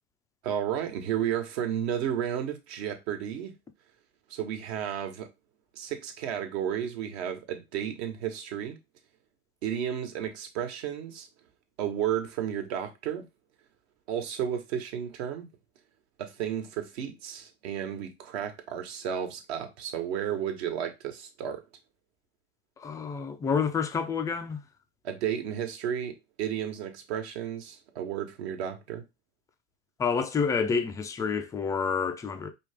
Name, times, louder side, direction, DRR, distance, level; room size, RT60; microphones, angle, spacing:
voice 1, 0.4-3.5 4.3-5.3 5.7-8.8 9.6-11.3 11.8-13.2 14.1-15.5 16.2-21.6 25.0-29.0, right 9 dB, 55° right, 1.3 m, -32 dB
voice 2, 22.8-24.6 30.0-32.5, left 5 dB, 10° left, 0.3 m, -28 dB
5.0 x 2.9 x 3.4 m
hypercardioid pair, 120°, 37 cm